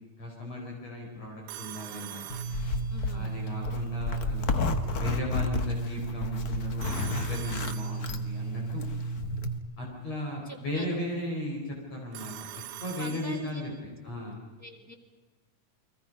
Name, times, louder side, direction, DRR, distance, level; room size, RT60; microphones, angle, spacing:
voice 1, 0.2-2.3 3.1-4.6 5.0-8.8 9.8-12.3 12.8-13.7 14.0-14.4, left 1 dB, 50° left, -1 dB, 5.9 m, -36 dB
Telephone, 1.5-3.3 6.8-8.5 12.1-13.8, right 13 dB, 70° right, 2.3 m, -44 dB
Zipper (clothing), 2.3-9.6, equal, 85° left, 0.8 m, -31 dB
voice 2, 2.9-3.3 10.4-11.0 13.0-14.0 14.6-14.9, equal, 5° right, 4 dB, 2.1 m, -44 dB
30.0 x 23.0 x 5.4 m, 1.2 s
omnidirectional pair, 3.9 m